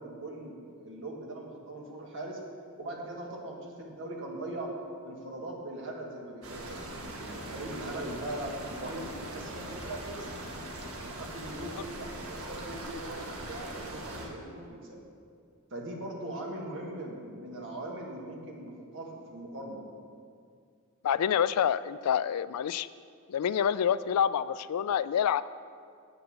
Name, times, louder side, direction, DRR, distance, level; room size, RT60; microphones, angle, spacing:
voice 1, 0.0-2.4 2.8-4.7 5.0-10.3 11.0-15.0 15.7-19.8, right 1 dB, 60° right, -1 dB, 1.8 m, -40 dB
sound 1, 6.4-14.3, right 1 dB, 75° right, 1.6 m, -41 dB
voice 2, 21.0-22.9 23.3-25.4, left 8 dB, 90° left, 16 dB, 0.3 m, -27 dB
8.0 x 6.9 x 8.1 m, 2.3 s
head